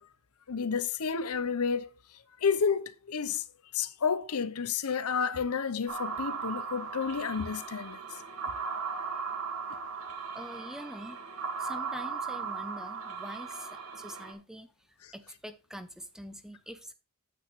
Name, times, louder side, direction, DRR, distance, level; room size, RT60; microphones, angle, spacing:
voice 1, 0.5-1.9 2.4-3.4 3.7-8.0, left 6 dB, 80° left, 0.7 m, -30 dB
sound 1, 5.9-14.3, right 5 dB, 70° right, 1.6 m, -37 dB
voice 2, 10.3-11.3 11.6-14.7 15.1-16.9, equal, ahead, 0.6 m, -44 dB
9.3 x 8.0 x 3.1 m
head